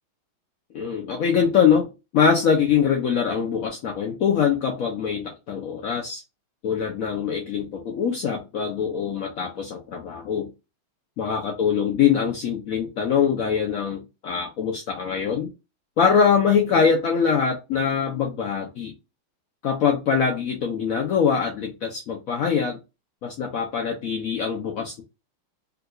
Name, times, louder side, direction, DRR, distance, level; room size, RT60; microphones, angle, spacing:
voice 1, 0.7-6.2 6.6-10.5 11.2-15.5 16.0-18.9 19.6-22.8 23.2-25.0, left 7 dB, 90° left, 0.7 m, -23 dB
3.6 x 2.8 x 2.3 m
omnidirectional pair, 2.3 m